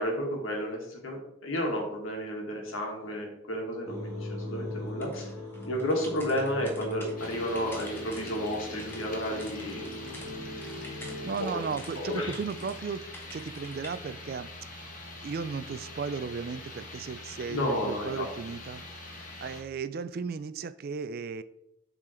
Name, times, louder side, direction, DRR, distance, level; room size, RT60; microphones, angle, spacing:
voice 1, 0.0-5.3 5.6-9.8 12.0-12.3 17.5-18.3, equal, 85° left, 1 dB, 1.7 m, -32 dB
sound 1, 3.9-11.4, left 1 dB, 20° right, 1.7 m, -39 dB
sound 2, 5.0-10.3 10.6-12.7 13.1-14.0, equal, 10° left, 1.1 m, -48 dB
sound 3, 7.2-19.6, left 2 dB, 40° left, 1.2 m, -44 dB
voice 2, 11.2-13.0 13.3-14.5 14.8-14.9 15.2-18.8 19.2-21.4, right 5 dB, 50° right, 14 dB, 0.3 m, -35 dB
7.7 x 3.9 x 4.3 m, 0.81 s
head